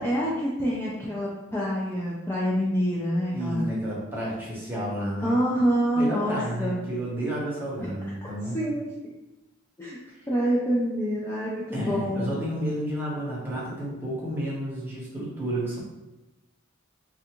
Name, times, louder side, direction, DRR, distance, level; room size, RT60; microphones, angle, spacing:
voice 1, 0.0-3.7 5.2-6.8 7.8-7.9 8.2-8.3 8.5-8.9 9.8-10.0 10.3-12.3, equal, 10° left, -7 dB, 0.4 m, -26 dB
voice 2, 3.3-5.4 5.9-8.6 11.7-15.8, right 1 dB, 10° right, -6 dB, 0.8 m, -31 dB
3.3 x 2.5 x 2.9 m, 0.98 s
head